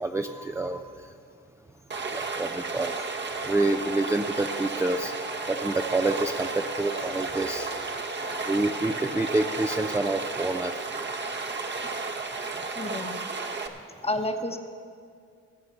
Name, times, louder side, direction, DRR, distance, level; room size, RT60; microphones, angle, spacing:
voice 1, 0.0-0.8 2.1-3.0 3.5-5.1 5.5-7.7 8.5-10.7, right 2 dB, 10° right, 4 dB, 0.5 m, -27 dB
Stream, 1.9-13.7, right 4 dB, 35° right, 1.1 m, -33 dB
sound 1, 3.2-10.4, left 5 dB, 45° left, 1.7 m, -45 dB
voice 2, 12.6-13.2 14.0-14.6, left 1 dB, 20° left, 6 dB, 1.1 m, -30 dB
18.0 x 8.0 x 5.9 m, 2.3 s
cardioid pair, 90°, 30 cm